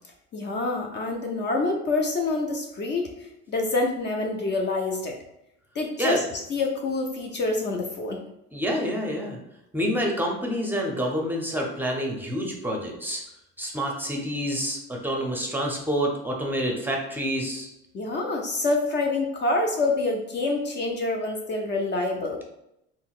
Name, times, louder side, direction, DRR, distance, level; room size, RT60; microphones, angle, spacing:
voice 1, 0.3-3.1 3.5-5.2 5.8-6.2 6.5-8.2 17.9-22.4, left 2 dB, 35° left, 1 dB, 0.5 m, -26 dB
voice 2, 8.5-9.4 9.7-13.2 13.6-17.7, equal, 5° right, 0 dB, 0.6 m, -28 dB
3.8 x 2.1 x 2.4 m, 0.83 s
supercardioid pair, 85°, 30 cm